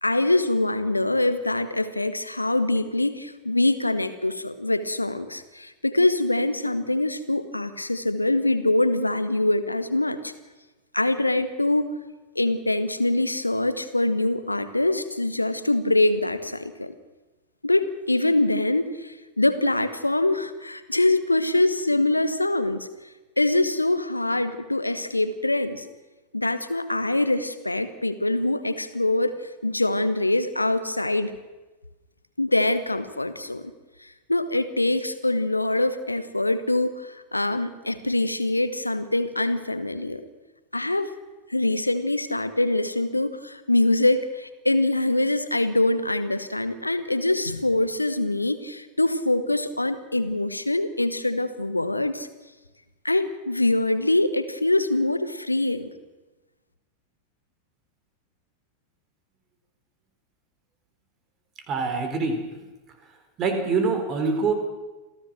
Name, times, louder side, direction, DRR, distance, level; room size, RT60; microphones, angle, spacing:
voice 1, 0.0-10.3 10.9-11.9 12.3-16.9 17.6-22.9 23.4-25.8 26.3-29.4 29.6-31.3 32.4-33.6 34.3-40.2 40.7-41.1 41.5-52.3 53.0-55.9, left 2 dB, 85° left, 12 dB, 1.2 m, -24 dB
voice 2, 61.7-62.4 63.4-64.5, right 4 dB, 30° right, 7 dB, 4.1 m, -24 dB
27.0 x 16.0 x 6.3 m, 1.2 s
figure-of-eight pair, 90°, 0 cm